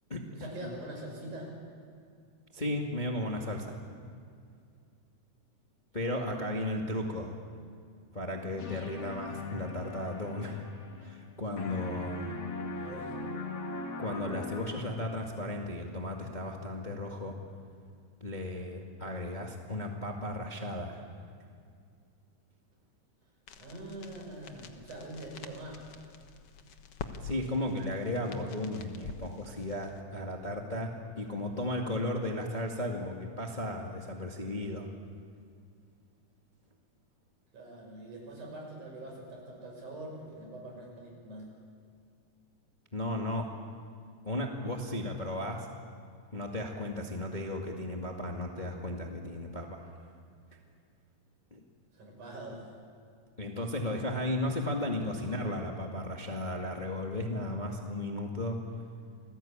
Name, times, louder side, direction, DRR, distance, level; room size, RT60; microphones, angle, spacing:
voice 1, 0.3-1.5 6.1-6.4 12.7-13.1 23.6-25.8 37.5-41.5 51.9-52.6 55.0-55.4, right 1 dB, 70° right, 0 dB, 7.8 m, -44 dB
voice 2, 2.5-3.8 5.9-7.4 8.1-10.6 11.0-12.4 14.0-17.3 18.2-21.0 27.2-34.9 42.9-43.5 44.2-45.7 46.3-50.0 51.5-51.6 53.4-58.6, left 1 dB, 20° left, 1 dB, 1.6 m, -35 dB
nice wave, 8.6-11.3 11.6-15.2, left 3 dB, 35° left, 2.1 m, -40 dB
sound 1, 23.5-30.0, left 5 dB, 55° left, 1.9 m, -47 dB
28.0 x 20.0 x 8.9 m, 2.3 s
omnidirectional pair, 3.7 m